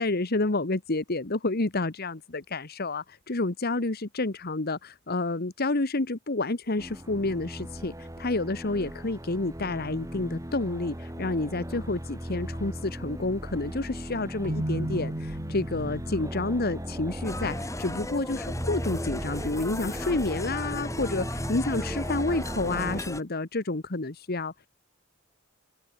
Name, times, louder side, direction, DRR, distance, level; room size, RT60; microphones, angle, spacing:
voice 1, 0.0-24.5, left 2 dB, 50° left, 1.4 m, -29 dB
sound 1, 6.8-23.0, equal, 15° right, 5.3 m, -37 dB
Keyboard (musical), 14.4-16.3, right 1 dB, 40° right, 1.9 m, -33 dB
sound 2, 17.2-23.2, left 2 dB, 15° left, 4.5 m, -37 dB
open air
head